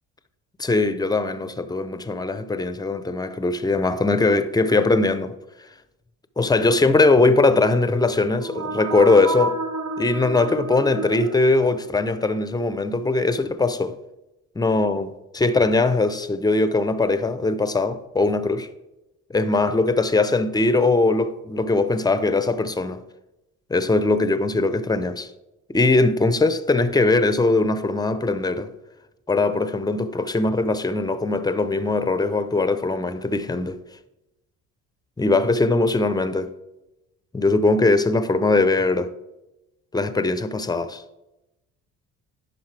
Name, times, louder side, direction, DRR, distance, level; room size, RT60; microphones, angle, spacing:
voice 1, 0.6-5.3 6.4-9.6 10.0-13.9 14.6-18.7 19.3-23.0 23.7-25.3 25.7-28.7 29.3-33.8 35.2-36.5 37.3-39.1 39.9-41.0, left 3 dB, 10° left, 0.6 m, -21 dB
sound 1, 8.2-12.1, right 3 dB, 60° right, 1.0 m, -30 dB
10.5 x 5.3 x 3.3 m
supercardioid pair, 65°, 34 cm